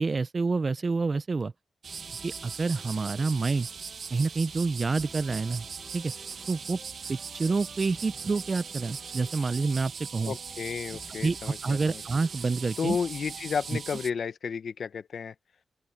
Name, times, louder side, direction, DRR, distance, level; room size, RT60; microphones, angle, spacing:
voice 1, 0.0-1.5 2.2-3.7 4.1-5.6 5.9-6.1 6.5-6.8 7.1-10.3 11.2-13.0, right 4 dB, 35° right, 0.4 m, -28 dB
sound 1, 1.8-13.8, left 1 dB, 5° left, 1.0 m, -53 dB
sound 2, 1.8-14.1, right 6 dB, 65° right, 0.9 m, -40 dB
voice 2, 10.3-12.0 12.8-15.3, left 6 dB, 65° left, 1.0 m, -32 dB
open air
wide cardioid pair, 115°, 0 cm